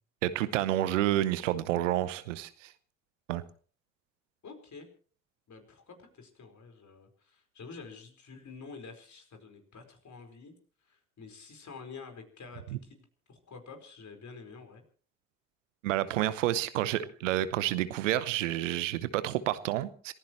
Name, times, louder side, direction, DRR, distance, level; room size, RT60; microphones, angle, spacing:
voice 1, 0.2-2.7 3.3-3.4 15.8-20.1, right 13 dB, 85° right, 15 dB, 0.9 m, -29 dB
voice 2, 4.4-4.9 5.5-10.5 10.8-14.8, left 4 dB, 50° left, 5 dB, 4.7 m, -48 dB
27.0 x 15.5 x 3.1 m, 0.44 s
figure-of-eight pair, 40°, 37 cm